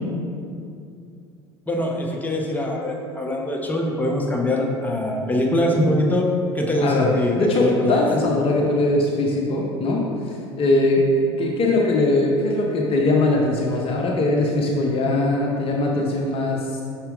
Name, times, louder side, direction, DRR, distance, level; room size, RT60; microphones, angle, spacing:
voice 1, 1.7-6.3 6.5-8.0, left 1 dB, 10° left, 0 dB, 0.9 m, -23 dB
voice 2, 6.8-7.1 7.4-11.1 11.4-16.8, left 2 dB, 40° left, -1 dB, 0.7 m, -21 dB
5.6 x 4.3 x 3.8 m, 2.5 s
hypercardioid pair, 70°, 15 cm